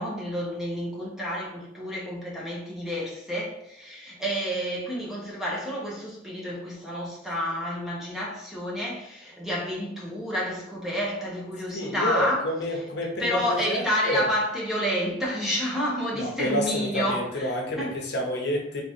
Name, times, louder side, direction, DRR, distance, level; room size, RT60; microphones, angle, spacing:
voice 1, 0.0-12.8 13.2-17.5 17.8-17.9, equal, ahead, -4 dB, 1.0 m, -30 dB
voice 2, 11.7-14.2 16.1-18.8, equal, 60° left, 0 dB, 0.9 m, -29 dB
3.5 x 2.9 x 4.3 m, 0.74 s
head